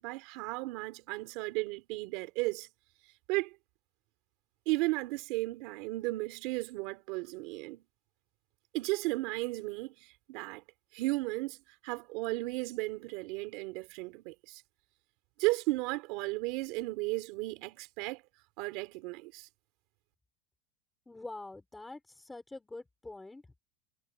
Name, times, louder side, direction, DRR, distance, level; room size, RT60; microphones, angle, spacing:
voice 1, 0.0-2.7 3.3-3.6 4.7-7.8 8.7-10.6 10.9-11.6 11.8-14.6 15.4-18.2 18.6-19.5, right 22 dB, 45° right, 3.0 m, -34 dB
voice 2, 21.1-23.6, left 2 dB, 5° left, 4.7 m, -46 dB
supercardioid pair, 180°, 0 cm